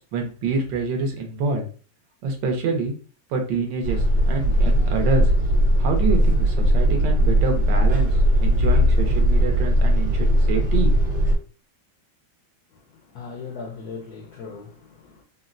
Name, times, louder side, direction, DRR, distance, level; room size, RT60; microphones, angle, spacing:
voice 1, 0.1-1.7 2.2-2.9 3.3-5.3 5.8-11.2, right 3 dB, 75° right, 1.4 m, -27 dB
sound 1, 3.8-11.4, equal, 60° right, 1.3 m, -19 dB
voice 2, 12.7-15.2, left 5 dB, 70° left, 0.9 m, -39 dB
3.8 x 2.1 x 2.4 m
omnidirectional pair, 2.0 m